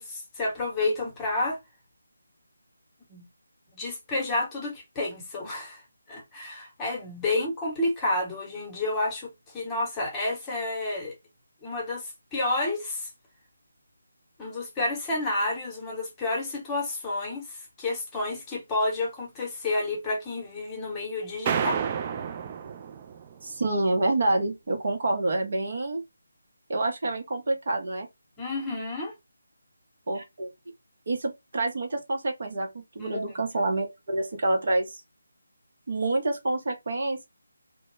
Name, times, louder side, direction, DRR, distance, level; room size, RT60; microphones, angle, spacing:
voice 1, 0.0-1.6 3.1-3.2 3.7-5.8 6.1-11.1 11.6-13.1 14.4-21.9 28.4-29.1 33.0-33.5, left 2 dB, 10° left, 0.9 m, -30 dB
sound 1, 21.5-23.4, right 7 dB, 25° right, 0.3 m, -30 dB
voice 2, 23.4-26.0 26.7-28.1 30.1-30.5 31.1-35.0 35.9-37.3, right 2 dB, 50° right, 0.7 m, -27 dB
2.1 x 2.1 x 3.1 m
figure-of-eight pair, 160°, 0 cm